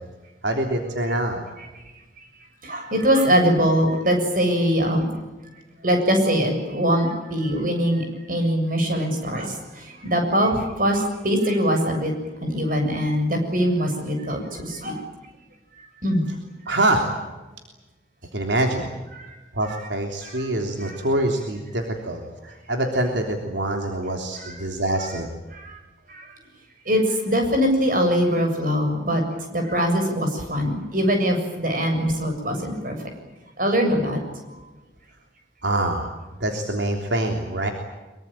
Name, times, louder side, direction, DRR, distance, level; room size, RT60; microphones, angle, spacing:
voice 1, 0.4-1.4 16.7-17.1 18.3-18.9 19.5-25.3 35.6-36.1 36.4-37.7, right 1 dB, 75° right, 3 dB, 3.4 m, -25 dB
voice 2, 2.6-5.1 5.8-12.1 12.4-15.0 16.0-16.2 19.1-19.3 20.2-20.5 20.8-21.0 24.4-24.6 25.5-25.8 26.1-26.4 26.9-29.2 29.5-33.0 33.6-34.2, equal, 45° right, 4 dB, 7.3 m, -22 dB
24.5 x 23.5 x 9.0 m, 1.2 s
head